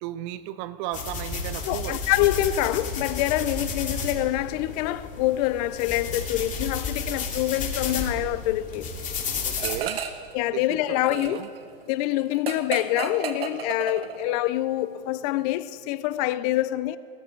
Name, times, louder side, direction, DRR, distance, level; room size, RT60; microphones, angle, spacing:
voice 1, 0.0-2.0 9.4-10.0 10.5-11.5, right 13 dB, 40° right, 0.5 m, -35 dB
sound 1, 0.9-9.8, left 4 dB, 25° left, 2.5 m, -32 dB
voice 2, 1.6-8.9 10.3-11.4 11.9-17.0, left 15 dB, 45° left, 0.6 m, -26 dB
sound 2, 9.6-10.3 10.6-14.4, right 7 dB, 80° right, 1.3 m, -33 dB
20.0 x 13.5 x 4.6 m
hypercardioid pair, 125°, 29 cm